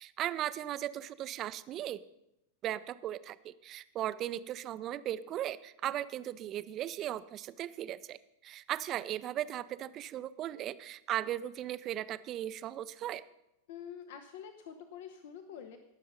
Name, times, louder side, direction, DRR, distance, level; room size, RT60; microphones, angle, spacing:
voice 1, 0.0-2.0 2.6-13.2, right 12 dB, 35° right, 16 dB, 0.5 m, -37 dB
voice 2, 13.7-15.8, left 8 dB, 55° left, 8 dB, 0.8 m, -46 dB
18.5 x 6.6 x 5.5 m, 0.85 s
figure-of-eight pair, 90°, 0 cm